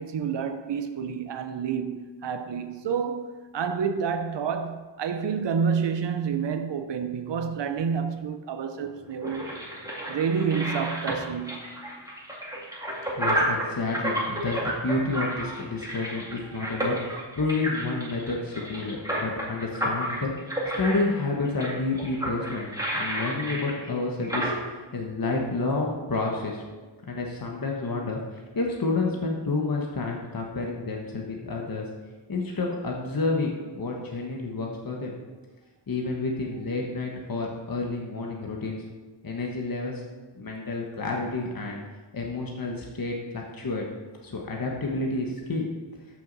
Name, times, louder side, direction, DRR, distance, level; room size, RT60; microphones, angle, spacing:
voice 1, 0.0-9.4 10.1-11.7 16.5-16.9, right 6 dB, 65° right, 0.7 m, -29 dB
sound 1, 8.7-24.5, right 1 dB, 10° right, 2.2 m, -31 dB
voice 2, 13.2-20.3 20.8-22.7 22.9-26.6 27.1-31.9 32.3-35.2 35.9-38.8 39.2-40.0 40.4-41.8 42.1-43.8 44.2-45.7, left 3 dB, 50° left, 1.2 m, -30 dB
13.5 x 6.2 x 4.0 m
wide cardioid pair, 100°, 45 cm